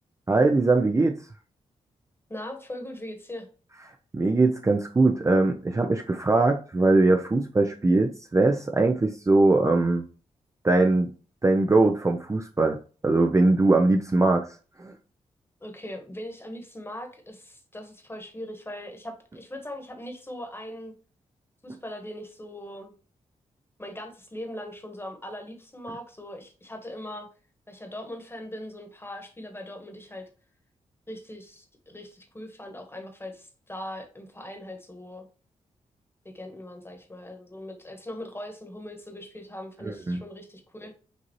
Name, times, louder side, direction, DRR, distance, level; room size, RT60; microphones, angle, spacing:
voice 1, 0.3-1.2 3.8-10.0 10.6-11.1 11.4-12.8 13.0-14.5 14.8-14.9 39.8-40.2, right 2 dB, 20° right, 3 dB, 0.5 m, -21 dB
voice 2, 2.3-3.5 15.6-20.9 21.6-22.9 23.8-27.3 27.7-30.3 31.1-35.2 36.2-40.9, left 1 dB, 15° left, 4 dB, 1.3 m, -40 dB
5.2 x 2.7 x 3.0 m, 0.37 s
cardioid pair, 55°, 13 cm